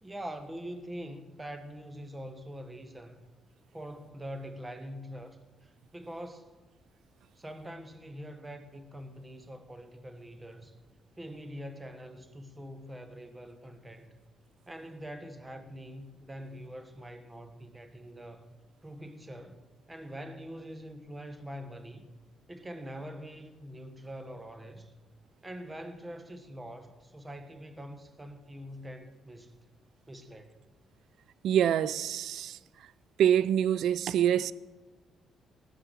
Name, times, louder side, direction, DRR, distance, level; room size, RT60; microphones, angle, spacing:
voice 1, 0.0-3.3 3.7-6.5 7.4-10.8 11.2-14.2 14.7-18.6 18.8-22.1 22.5-24.9 25.4-29.6 30.1-30.6, equal, 15° right, 1.4 m, -44 dB
voice 2, 31.4-32.6 33.2-34.5, right 10 dB, 75° right, 0.5 m, -25 dB
19.0 x 8.1 x 7.4 m
cardioid pair, 90°, 0 cm